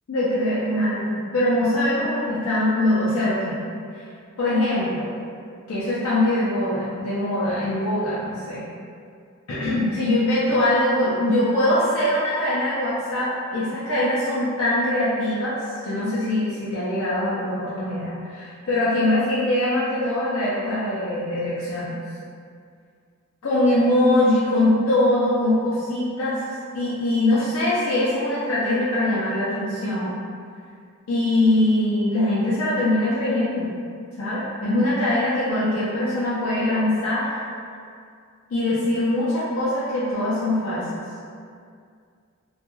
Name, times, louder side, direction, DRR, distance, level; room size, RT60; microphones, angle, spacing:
voice 1, 0.1-3.6 4.0-4.1 4.4-5.1 5.7-8.6 9.5-22.0 23.4-30.1 31.1-33.7 34.2-37.4 38.5-41.0, left 1 dB, 70° left, -10 dB, 0.5 m, -22 dB
2.2 x 2.2 x 3.0 m, 2.2 s
head